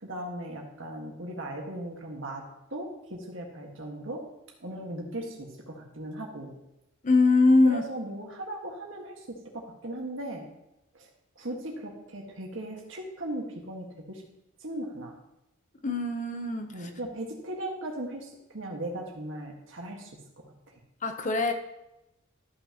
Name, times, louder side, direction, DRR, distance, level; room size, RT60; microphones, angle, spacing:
voice 1, 0.0-2.4 2.7-4.2 4.6-6.5 7.6-10.4 10.9-11.1 11.3-14.2 14.6-15.1 16.7-20.1 20.4-20.7, right 1 dB, 70° right, 0 dB, 1.7 m, -38 dB
voice 2, 7.0-7.8 15.8-16.7 21.0-21.5, left 3 dB, 40° left, 6 dB, 0.8 m, -22 dB
13.5 x 5.9 x 2.9 m, 0.89 s
head